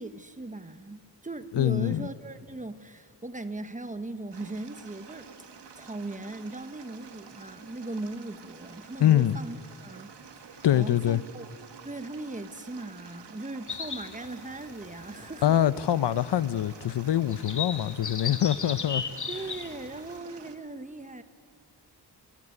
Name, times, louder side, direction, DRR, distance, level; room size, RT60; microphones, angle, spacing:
voice 1, 0.0-5.3 5.8-10.1 10.4-11.5 11.8-15.6 19.3-21.2, right 2 dB, 20° right, 1.1 m, -39 dB
voice 2, 1.5-2.1 9.0-9.4 10.6-11.2 15.4-19.0, left 11 dB, 85° left, 0.7 m, -24 dB
sound 1, 4.3-20.6, right 6 dB, 80° right, 1.8 m, -49 dB
sound 2, 13.7-20.2, left 6 dB, 45° left, 1.5 m, -38 dB
26.5 x 19.0 x 9.8 m
wide cardioid pair, 125°, 41 cm